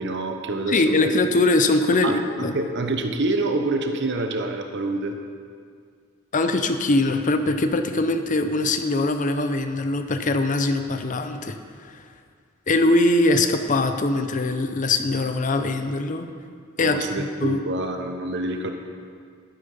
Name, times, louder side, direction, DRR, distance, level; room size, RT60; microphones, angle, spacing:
voice 1, 0.0-1.2 2.0-5.2 16.8-18.7, right 2 dB, 55° right, 5 dB, 0.8 m, -27 dB
voice 2, 0.7-2.5 6.3-11.6 11.9-12.0 12.7-16.3 16.8-17.6, left 2 dB, 35° left, 8 dB, 0.6 m, -22 dB
11.5 x 9.4 x 5.4 m, 2.1 s
head